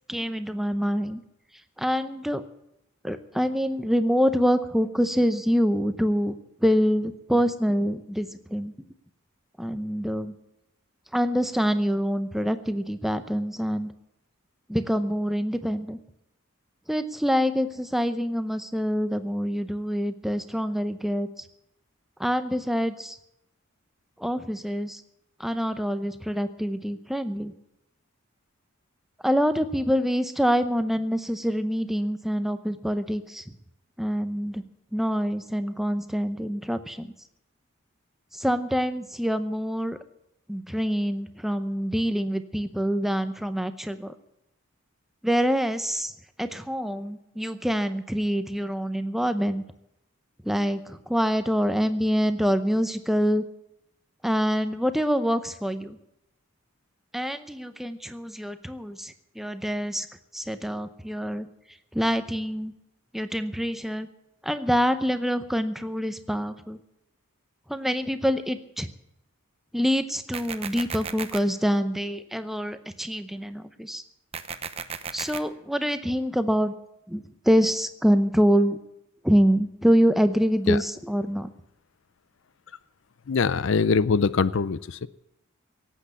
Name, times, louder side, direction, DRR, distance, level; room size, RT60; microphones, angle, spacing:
voice 1, 0.1-1.2 1.8-2.4 3.0-6.3 6.6-8.7 9.6-10.3 11.1-13.9 14.7-16.0 16.9-21.4 22.2-23.2 24.2-25.0 25.4-27.5 29.2-33.4 34.0-34.6 34.9-37.1 38.3-40.0 40.5-44.1 45.2-46.1 46.4-49.6 50.4-53.4 54.2-56.0 57.1-60.1 60.3-61.5 61.9-62.7 63.1-64.1 64.4-66.8 67.7-68.9 69.7-74.0 75.1-76.7 77.1-78.8 79.2-81.5, equal, ahead, 10 dB, 0.7 m, -25 dB
sound 1, 70.3-71.4 74.3-75.4, right 6 dB, 30° right, 0.8 m, -34 dB
voice 2, 83.3-85.1, left 5 dB, 60° left, 17 dB, 0.5 m, -23 dB
17.5 x 8.5 x 8.2 m, 0.82 s
head